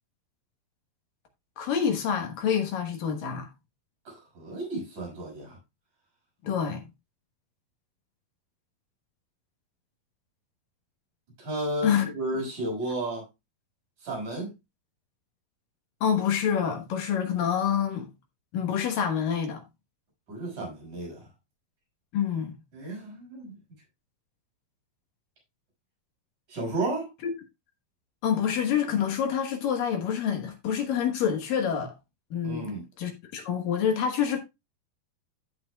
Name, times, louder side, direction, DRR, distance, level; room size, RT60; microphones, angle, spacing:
voice 1, 1.6-3.5 6.4-6.8 11.8-12.1 16.0-18.1 18.5-19.6 22.1-22.6 28.2-31.9 32.3-32.7 33.0-34.4, left 8 dB, 70° left, 3.0 m, -27 dB
voice 2, 4.1-5.6 11.4-13.2 14.0-14.5 20.3-21.2 22.7-23.6 26.5-27.1 32.4-32.8, right 1 dB, 55° right, 7.3 m, -33 dB
14.5 x 6.1 x 2.3 m
omnidirectional pair, 4.3 m